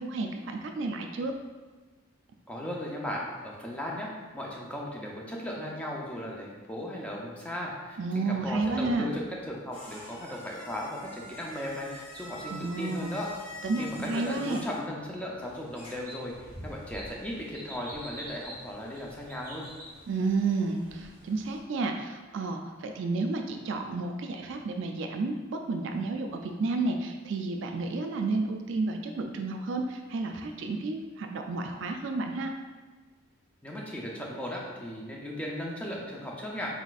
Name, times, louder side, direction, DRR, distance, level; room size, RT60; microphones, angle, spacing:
voice 1, 0.0-1.3 8.0-9.1 12.5-13.1 13.6-14.6 20.1-32.5, right 3 dB, 60° right, 4 dB, 0.3 m, -31 dB
voice 2, 2.5-13.3 13.8-19.7 33.6-36.8, left 1 dB, 5° left, -3 dB, 0.5 m, -37 dB
sound 1, 9.2-16.2, left 1 dB, 25° left, 1.1 m, -46 dB
sound 2, 15.4-21.6, equal, 15° right, 0.9 m, -46 dB
4.2 x 4.1 x 2.4 m, 1.3 s
head